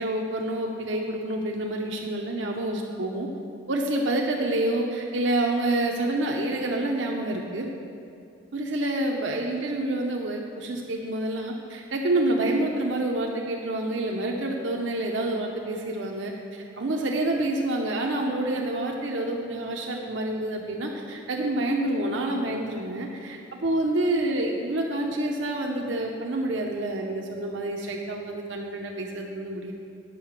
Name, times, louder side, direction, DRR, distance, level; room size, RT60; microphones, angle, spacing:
voice 1, 0.0-3.3 3.7-7.7 8.5-29.7, right 1 dB, 75° right, 0 dB, 0.8 m, -28 dB
9.3 x 5.8 x 7.2 m, 2.4 s
head